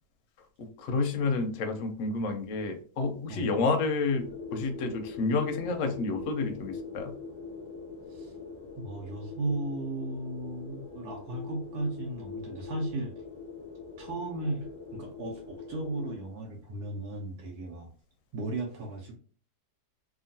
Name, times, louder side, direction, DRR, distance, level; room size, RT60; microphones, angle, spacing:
voice 1, 0.6-7.1, left 3 dB, 65° left, 6 dB, 0.9 m, -30 dB
sound 1, 4.1-16.2, left 4 dB, 15° right, 1.2 m, -42 dB
voice 2, 8.8-13.1 14.0-14.7 14.9-17.9 18.3-19.2, right 2 dB, 85° right, -1 dB, 1.2 m, -35 dB
2.9 x 2.4 x 2.6 m, 0.43 s
omnidirectional pair, 1.7 m